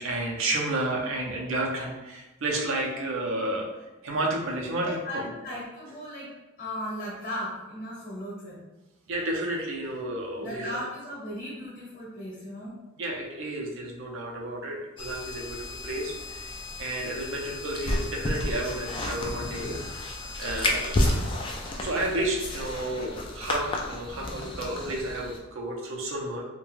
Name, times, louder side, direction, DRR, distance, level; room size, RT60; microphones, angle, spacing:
voice 1, 0.0-3.7 4.0-5.0 9.1-10.8 13.0-19.7 20.4-21.2 21.8-26.4, right 1 dB, 70° right, -1 dB, 0.5 m, -31 dB
voice 2, 4.8-6.3 6.6-8.6 10.4-12.8, left 1 dB, 45° left, -6 dB, 0.9 m, -36 dB
sound 1, 15.0-25.4, left 1 dB, 25° left, 0.3 m, -32 dB
2.4 x 2.2 x 3.1 m, 1.1 s
head